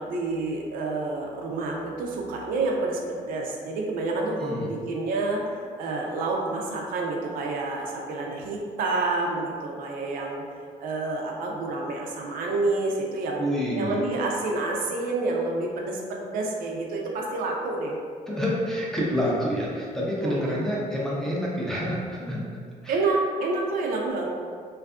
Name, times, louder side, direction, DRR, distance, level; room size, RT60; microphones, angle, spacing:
voice 1, 0.0-10.4 10.8-13.4 13.8-18.0 19.2-19.3 20.2-20.6 22.9-24.3, right 3 dB, 70° right, -1 dB, 0.4 m, -28 dB
voice 2, 4.4-4.7 13.4-14.1 18.3-22.4 22.8-22.9, equal, 5° left, -6 dB, 0.4 m, -28 dB
2.5 x 2.3 x 2.3 m, 2.1 s
cardioid pair, 160°, 15 cm